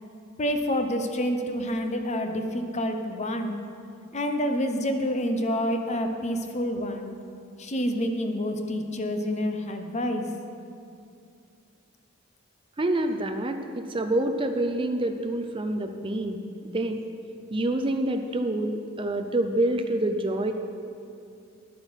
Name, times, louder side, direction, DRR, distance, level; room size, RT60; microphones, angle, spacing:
voice 1, 0.4-3.6 4.1-7.1 7.6-10.3, equal, 35° left, 6 dB, 0.8 m, -28 dB
voice 2, 12.8-17.0 17.5-20.5, right 1 dB, 25° right, 6 dB, 0.5 m, -27 dB
11.0 x 9.0 x 5.7 m, 2.5 s
head